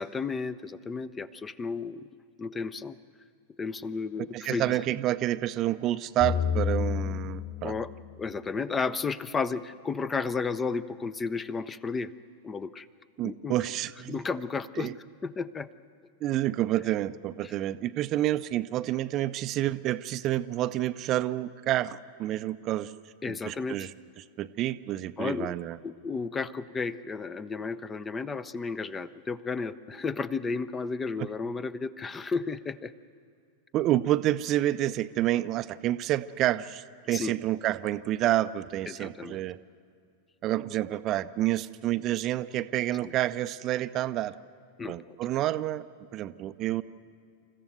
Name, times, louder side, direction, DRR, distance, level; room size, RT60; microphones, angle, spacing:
voice 1, 0.0-2.1 2.4-3.0 3.6-4.8 7.6-7.9 8.2-12.1 12.4-12.9 13.2-13.6 14.1-14.9 15.2-15.7 17.4-17.5 23.2-23.9 25.2-25.5 25.8-32.9 37.1-37.3 38.9-39.4 43.0-43.1 44.8-45.2, left 4 dB, 15° left, 17 dB, 0.6 m, -33 dB
voice 2, 4.3-7.8 13.2-14.2 14.8-14.9 16.2-22.9 23.3-23.9 24.2-25.8 33.7-39.6 40.4-44.3 44.9-45.8 46.1-46.8, right 14 dB, 35° right, 14 dB, 0.5 m, -29 dB
sound 1, 6.2-9.4, left 8 dB, 40° left, 2.7 m, -31 dB
28.5 x 14.5 x 7.9 m, 2.4 s
figure-of-eight pair, 90°, 0 cm